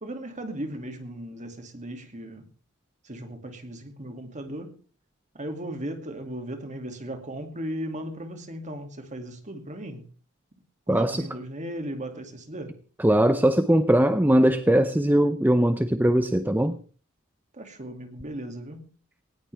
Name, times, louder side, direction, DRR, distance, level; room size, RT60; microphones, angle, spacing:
voice 1, 0.0-2.4 3.0-4.8 5.3-10.1 10.9-12.8 17.5-18.9, right 1 dB, 35° right, 2.5 m, -36 dB
voice 2, 10.9-11.2 13.0-16.7, right 1 dB, 10° right, 0.6 m, -20 dB
18.5 x 18.0 x 3.5 m
head